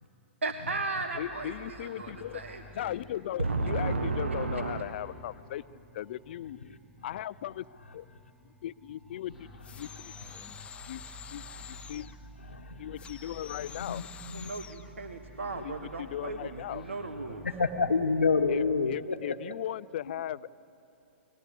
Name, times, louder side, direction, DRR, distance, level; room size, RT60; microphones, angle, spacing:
voice 1, 0.4-2.9 3.4-4.8 14.3-17.5, right 3 dB, 80° right, 7 dB, 1.4 m, -34 dB
voice 2, 1.2-2.4 2.7-6.6 7.0-7.7 7.9-8.1 8.6-10.1 10.9-11.0 11.3-12.1 12.6-14.0 15.6-16.9 18.5-20.5, left 12 dB, 55° left, 19 dB, 0.5 m, -38 dB
sound 1, 1.2-18.8, right 1 dB, 5° right, 1.8 m, -53 dB
sound 2, 9.6-12.2 13.0-14.9, left 8 dB, 15° left, 1.0 m, -47 dB
voice 3, 10.3-11.0 11.4-12.1 12.4-13.0 13.6-14.5 15.5-15.6 17.4-19.3 20.2-20.4, left 4 dB, 85° left, 0 dB, 1.1 m, -31 dB
29.5 x 20.0 x 8.4 m, 2.9 s
hypercardioid pair, 115°, 7 cm